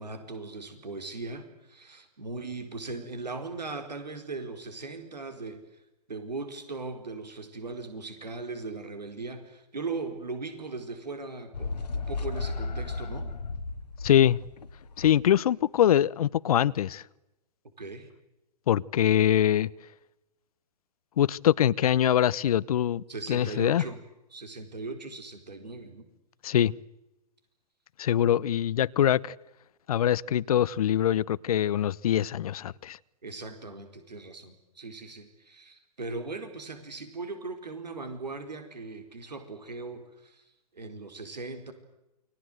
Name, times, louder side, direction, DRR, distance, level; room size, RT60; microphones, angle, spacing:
voice 1, 0.0-5.6 6.1-13.3 17.8-18.1 23.1-24.0 24.3-26.0 33.2-40.4 40.7-41.7, right 3 dB, 90° right, 4.5 m, -39 dB
sound 1, 11.5-15.4, left 3 dB, 80° left, 1.9 m, -34 dB
voice 2, 14.0-14.4 15.0-17.0 18.7-19.7 21.2-23.0 23.3-23.8 26.4-26.7 28.0-29.3 29.9-33.0, left 10 dB, 65° left, 1.0 m, -23 dB
29.5 x 23.5 x 7.9 m
hypercardioid pair, 120°, 21 cm